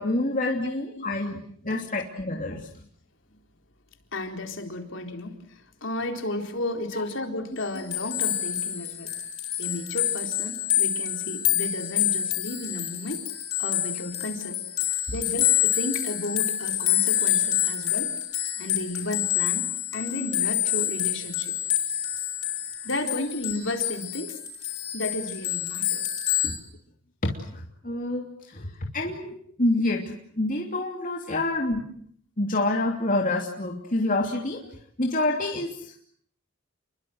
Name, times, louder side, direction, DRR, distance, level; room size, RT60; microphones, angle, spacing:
voice 1, 0.0-2.7 6.9-7.0 26.4-26.5 27.2-27.4 27.8-29.3 29.6-31.8 32.4-34.6 35.0-35.7, left 2 dB, 40° left, 1 dB, 3.0 m, -27 dB
voice 2, 0.6-1.1 1.7-1.9 4.1-9.1 9.6-13.3 13.6-14.6 15.1-18.2 18.6-21.5 22.8-24.4 24.9-26.1 31.3-31.4, left 2 dB, 60° left, 4 dB, 4.2 m, -33 dB
sound 1, 7.6-26.6, left 12 dB, 85° left, 6.7 m, -27 dB
30.0 x 23.5 x 8.0 m, 0.64 s
head